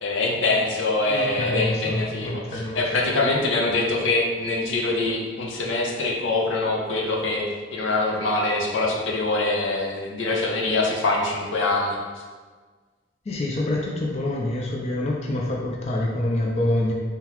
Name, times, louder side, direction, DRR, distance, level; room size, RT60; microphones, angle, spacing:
voice 1, 0.0-7.4 7.7-12.0, left 2 dB, 80° left, -1 dB, 0.7 m, -24 dB
voice 2, 1.1-2.8 3.7-3.8 13.3-16.9, left 1 dB, 35° left, -2 dB, 0.4 m, -26 dB
3.7 x 3.5 x 2.9 m, 1.5 s
head